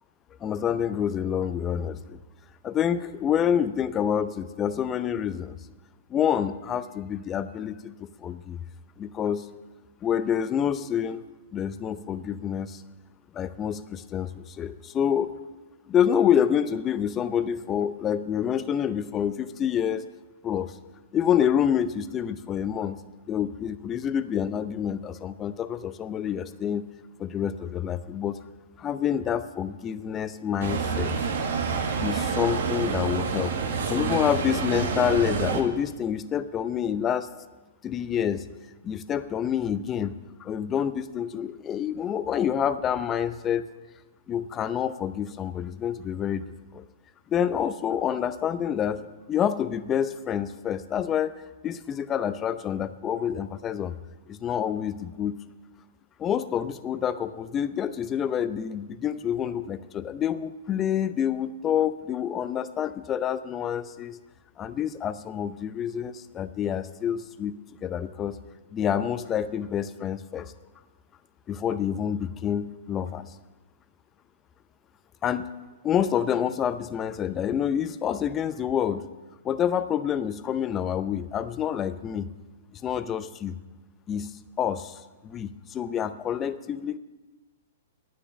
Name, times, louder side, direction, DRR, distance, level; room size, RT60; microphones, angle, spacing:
voice 1, 0.4-2.2 2.6-5.6 6.1-8.6 9.0-9.5 10.0-11.2 11.5-12.8 13.3-15.4 15.9-20.1 20.4-20.7 21.1-23.0 23.3-26.9 27.2-28.4 28.8-31.1 32.0-33.6 33.9-37.3 37.8-38.4 38.8-40.1 40.4-43.6 44.3-46.4 46.7-46.8 47.3-51.3 51.6-54.0 54.3-55.4 56.2-64.2 64.6-68.4 68.7-70.5 71.5-73.3 75.2-75.5 75.8-79.0 79.4-82.3 82.7-83.6 84.1-87.0, left 9 dB, 25° left, 12 dB, 0.6 m, -27 dB
sound 1, 30.6-35.6, right 5 dB, 70° right, 1.6 m, -28 dB
10.0 x 9.5 x 7.3 m, 1.2 s
hypercardioid pair, 130°, 0 cm